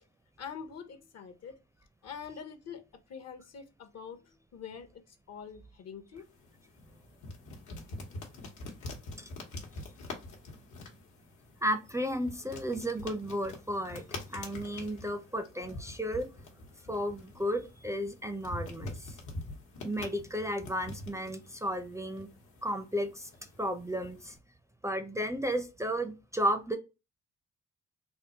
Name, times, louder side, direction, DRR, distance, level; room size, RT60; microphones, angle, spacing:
voice 1, 0.4-1.6 2.0-6.3, left 7 dB, 55° left, 0.7 m, -45 dB
sound 1, 6.2-24.4, left 2 dB, 80° left, 1.0 m, -45 dB
voice 2, 11.6-14.0 14.3-16.3 16.9-19.2 19.8-22.3 22.6-23.3 23.6-24.4 24.8-26.8, equal, 10° right, 0.4 m, -33 dB
3.6 x 2.1 x 2.7 m
cardioid pair, 75°, 30 cm